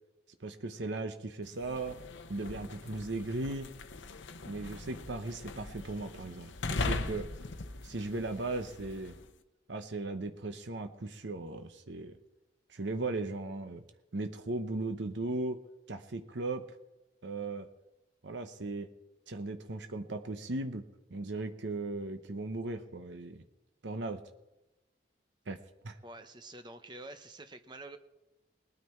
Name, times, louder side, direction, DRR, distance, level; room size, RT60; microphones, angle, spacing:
voice 1, 0.4-2.0 2.3-3.7 4.5-7.3 7.8-9.2 9.7-12.2 12.7-13.8 14.1-15.6 15.9-16.7 17.2-17.7 18.2-18.9 19.3-23.4 23.8-24.2 25.5-25.6 25.8-26.0, right 2 dB, 75° right, 7 dB, 0.8 m, -37 dB
sound 1, 1.5-9.3, left 3 dB, 85° left, 0.8 m, -40 dB
voice 2, 26.0-28.0, right 2 dB, 25° right, 8 dB, 0.8 m, -47 dB
20.5 x 9.6 x 4.4 m, 0.98 s
head